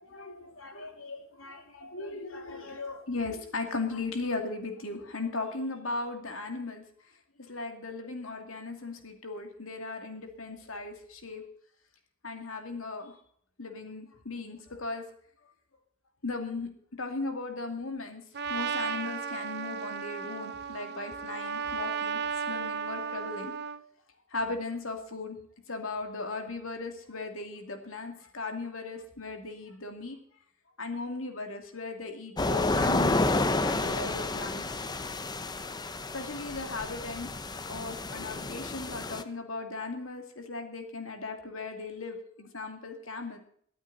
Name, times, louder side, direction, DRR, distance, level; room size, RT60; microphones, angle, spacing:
voice 1, 0.1-6.8 7.5-11.4 12.2-13.2 13.6-15.1 16.2-16.7 17.0-18.2 18.5-22.2 22.5-23.5 24.3-25.4 25.7-30.2 30.8-33.3 33.6-34.6 36.1-37.3 37.7-43.4, left 3 dB, 70° left, 4 dB, 2.6 m, -37 dB
Trumpet, 18.3-23.8, right 6 dB, 55° right, 0.8 m, -34 dB
sound 1, 32.4-39.2, left 2 dB, 20° left, 0.7 m, -30 dB
23.0 x 8.8 x 4.1 m, 0.63 s
head